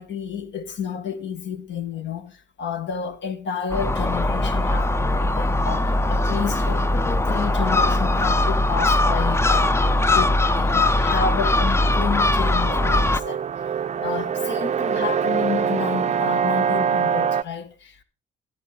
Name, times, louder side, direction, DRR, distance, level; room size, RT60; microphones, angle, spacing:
voice 1, 0.0-13.4 14.0-18.0, left 6 dB, 65° left, 1.6 m, -30 dB
Gull seagull, 3.7-13.2, left 2 dB, 15° left, 0.5 m, -20 dB
sound 1, 11.6-17.4, right 7 dB, 35° right, 0.5 m, -24 dB
13.0 x 11.0 x 3.8 m
cardioid pair, 90°, 20 cm